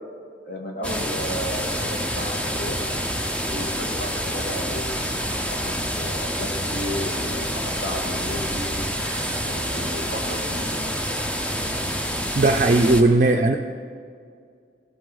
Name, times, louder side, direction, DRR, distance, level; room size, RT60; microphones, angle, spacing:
voice 1, 0.4-2.8 3.5-4.9 5.5-8.8 9.4-10.7 13.2-13.3, equal, 55° left, 0 dB, 1.6 m, -33 dB
sound 1, 0.8-13.0, equal, 5° left, 0.5 m, -27 dB
voice 2, 9.0-9.5 12.3-13.6, right 2 dB, 45° right, 4 dB, 0.4 m, -19 dB
16.0 x 7.8 x 3.9 m, 2.2 s
head